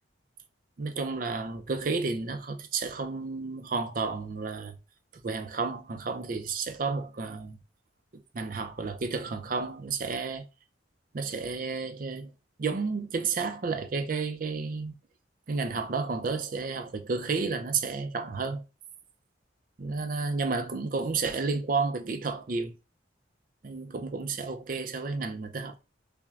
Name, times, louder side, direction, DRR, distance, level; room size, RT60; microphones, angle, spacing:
voice 1, 0.8-4.8 5.2-7.6 8.1-10.5 11.1-12.3 12.6-15.0 15.5-18.6 19.8-22.8 23.6-25.8, right 4 dB, 45° right, 0.4 m, -31 dB
5.6 x 2.1 x 2.5 m
head